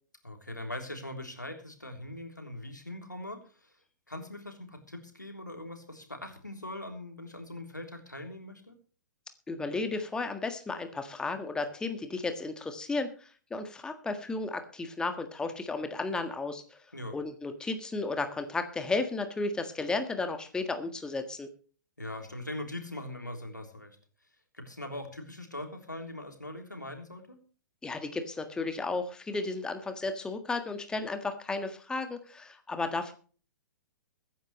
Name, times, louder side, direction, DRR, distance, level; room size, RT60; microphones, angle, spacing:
voice 1, 0.2-3.8 4.1-8.8 16.9-17.2 22.0-24.0 24.5-27.4, left 1 dB, 85° left, 4 dB, 3.4 m, -41 dB
voice 2, 9.5-16.8 17.1-21.5 27.8-33.1, left 3 dB, 10° left, 8 dB, 1.6 m, -34 dB
22.5 x 10.5 x 3.2 m, 0.40 s
figure-of-eight pair, 115°, 10 cm